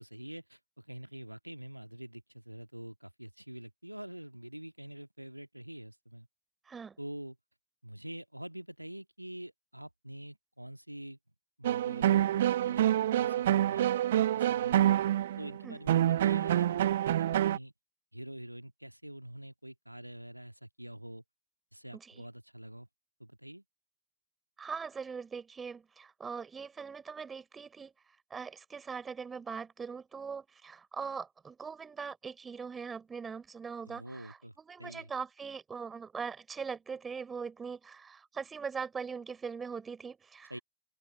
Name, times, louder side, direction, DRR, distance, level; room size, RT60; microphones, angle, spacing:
voice 1, 0.0-6.3 7.0-7.4 7.8-11.2 11.6-14.9 15.4-17.7 18.1-21.2 21.7-22.9 23.2-23.6 33.8-34.5 34.8-35.1 40.5-40.6, right 1 dB, 90° right, 1.7 m, -46 dB
voice 2, 6.7-7.0 15.6-15.8 21.9-22.2 24.6-27.9 28.3-40.6, right 5 dB, 15° right, 3.6 m, -41 dB
sound 1, 11.6-17.6, right 12 dB, 60° right, 0.8 m, -27 dB
open air
figure-of-eight pair, 90°, 0 cm